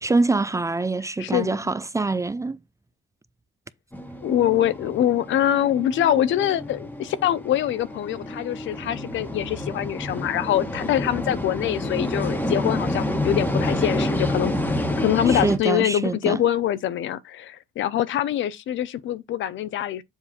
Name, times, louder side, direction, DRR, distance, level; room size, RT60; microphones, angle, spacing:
voice 1, 0.0-2.6 15.3-16.4, right 3 dB, 15° right, 0.4 m, -24 dB
voice 2, 1.2-1.6 4.2-14.5 15.0-20.0, left 11 dB, 75° left, 0.7 m, -24 dB
sound 1, 3.9-15.6, left 1 dB, 10° left, 1.3 m, -28 dB
7.3 x 2.6 x 4.9 m
cardioid pair, 90°, 20 cm